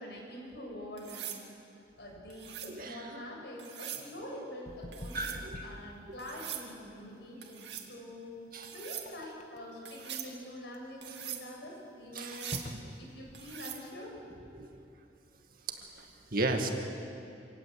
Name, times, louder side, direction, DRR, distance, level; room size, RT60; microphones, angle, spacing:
voice 1, 0.0-1.5 2.0-8.3 8.7-12.6 13.0-14.1, left 1 dB, 65° left, -1 dB, 7.2 m, -45 dB
sound 1, 1.0-1.4 2.3-2.8 3.6-4.1 4.9-5.4 6.2-6.7 7.4-7.9 8.6-9.1 9.9-10.3 11.0-11.4 12.2-12.7 13.3-13.8 15.8-16.0, right 10 dB, 70° right, 2.5 m, -42 dB
voice 2, 2.8-3.2 5.1-5.7 6.1-6.2 8.5-8.7 12.1-12.4 12.7-12.9 14.5-14.7 15.9-16.7, right 2 dB, 55° right, 4 dB, 2.3 m, -35 dB
sound 2, 4.7-13.4, left 1 dB, 45° left, 1.4 m, -47 dB
27.0 x 18.5 x 8.4 m, 2.7 s
head